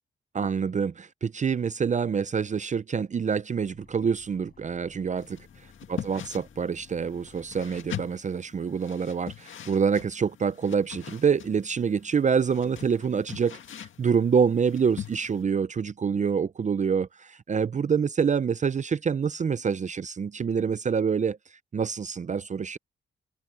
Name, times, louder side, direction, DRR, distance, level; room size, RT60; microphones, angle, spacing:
voice 1, 0.3-5.4 5.9-21.4 21.7-22.8, right 6 dB, 35° right, 0.5 m, -26 dB
sound 1, 3.6-8.0, left 5 dB, 45° left, 7.9 m, -56 dB
sound 2, 5.2-15.4, left 9 dB, 75° left, 1.9 m, -43 dB
open air
cardioid pair, 95°, 20 cm